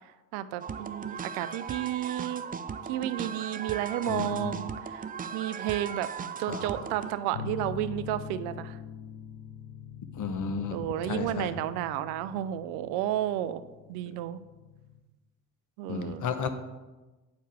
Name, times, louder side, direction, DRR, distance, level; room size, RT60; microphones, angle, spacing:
voice 1, 0.3-2.4 2.9-6.1 6.4-8.8 10.7-13.6 13.9-14.4 15.8-16.5, right 13 dB, 70° right, 14 dB, 0.6 m, -32 dB
sound 1, 0.6-7.2, right 6 dB, 20° right, 0.4 m, -37 dB
voice 2, 4.1-4.5 6.5-6.9 10.1-11.5 15.9-16.5, left 6 dB, 45° left, 8 dB, 1.0 m, -33 dB
sound 2, 7.3-15.0, left 8 dB, 70° left, 1.0 m, -43 dB
9.3 x 4.5 x 4.7 m, 1.2 s
hypercardioid pair, 45°, 43 cm